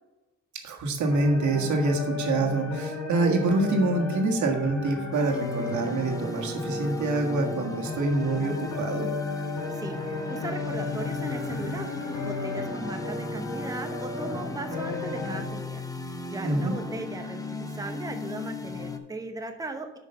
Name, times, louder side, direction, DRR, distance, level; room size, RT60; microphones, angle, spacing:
voice 1, 0.6-9.1 16.4-16.7, right 2 dB, 70° right, 2 dB, 1.7 m, -26 dB
sound 1, 1.1-15.4, left 3 dB, 70° left, 2.8 m, -34 dB
sound 2, 5.1-19.0, left 2 dB, 10° left, 0.9 m, -38 dB
voice 2, 9.7-12.0 12.2-15.9 16.3-20.0, right 2 dB, 10° right, 5 dB, 0.9 m, -38 dB
6.4 x 5.2 x 6.7 m, 1.1 s
cardioid pair, 90°, 30 cm